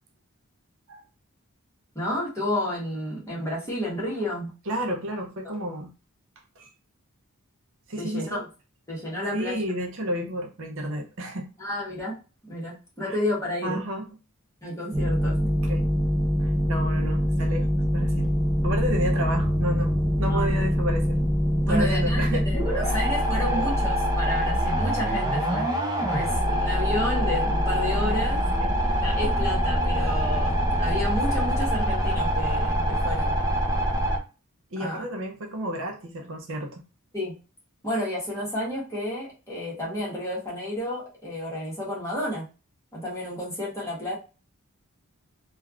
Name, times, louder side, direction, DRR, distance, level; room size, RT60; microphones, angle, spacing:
voice 1, 1.9-4.5 5.4-5.5 8.0-8.4 8.9-9.6 11.6-12.1 12.5-13.8 14.6-15.5 20.3-20.5 21.6-25.7 26.0-28.4 29.0-33.3 34.8-35.0 37.1-37.3 37.8-42.4 42.9-44.1, left 1 dB, 15° left, -6 dB, 1.3 m, -31 dB
voice 2, 4.7-5.9 6.6-6.7 7.9-8.4 9.3-11.5 13.0-13.2 13.6-14.1 15.6-15.9 16.4-18.3 18.6-21.2 21.7-22.5 22.8-23.0 23.3-23.9 27.9-28.3 28.6-28.7 34.7-36.8, equal, 60° right, 2 dB, 0.6 m, -31 dB
sound 1, 14.9-34.2, equal, 15° right, 0.5 m, -24 dB
3.3 x 2.4 x 2.4 m, 0.32 s
head